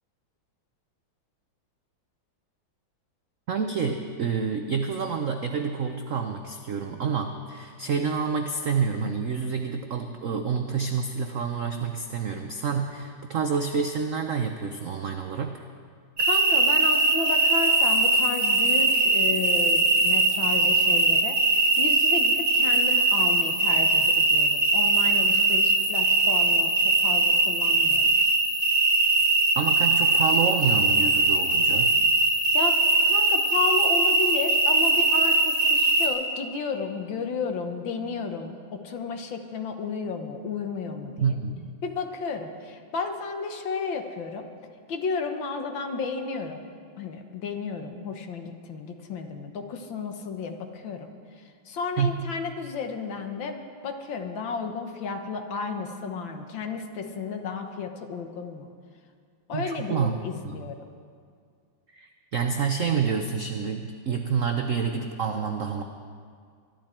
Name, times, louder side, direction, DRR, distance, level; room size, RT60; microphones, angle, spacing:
voice 1, 3.5-15.6 29.6-31.9 41.2-41.7 52.0-52.3 59.5-60.6 61.9-65.8, right 6 dB, 75° right, 5 dB, 0.7 m, -28 dB
voice 2, 16.2-28.2 32.5-32.8 33.1-41.3 41.8-44.5 44.9-46.7 47.0-51.1 51.4-58.7 59.5-60.8, left 5 dB, 65° left, 5 dB, 1.8 m, -33 dB
sound 1, 16.2-36.1, right 2 dB, 40° right, 2.0 m, -21 dB
23.5 x 12.0 x 4.4 m, 2.1 s
omnidirectional pair, 2.3 m